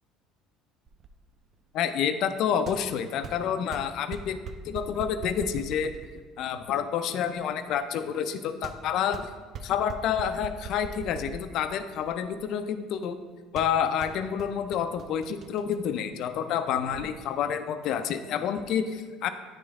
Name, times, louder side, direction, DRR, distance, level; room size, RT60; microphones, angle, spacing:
sound 1, 0.9-17.0, right 5 dB, 45° right, 0.4 m, -44 dB
voice 1, 1.7-4.4 4.6-5.9 6.4-9.3 9.6-13.2 13.5-19.3, left 8 dB, 65° left, 10 dB, 0.4 m, -29 dB
9.4 x 3.2 x 3.5 m, 1.4 s
supercardioid pair, 90°, 0 cm